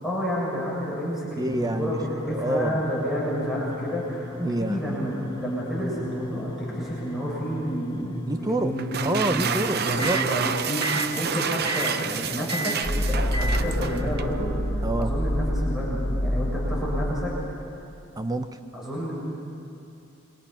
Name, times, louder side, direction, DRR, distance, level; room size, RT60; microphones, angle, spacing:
voice 1, 0.0-5.1 5.4-8.2 8.6-8.9 9.3-9.6 9.8-17.3 18.7-19.2, equal, ahead, -7 dB, 7.5 m, -30 dB
voice 2, 1.4-2.0 2.3-2.8 4.4-4.8 8.3-8.7 9.0-10.2 14.8-15.1 18.2-18.6, right 1 dB, 20° right, 9 dB, 0.7 m, -27 dB
sound 1, 1.5-10.3 10.8-11.1 11.7-12.0 12.5-12.8 13.3-13.7, left 1 dB, 20° left, 0.7 m, -36 dB
sound 2, 8.8-14.4, right 7 dB, 50° right, 0.8 m, -29 dB
sound 3, 12.8-17.7, equal, 45° left, 2.1 m, -27 dB
28.0 x 24.0 x 5.8 m, 2.7 s
head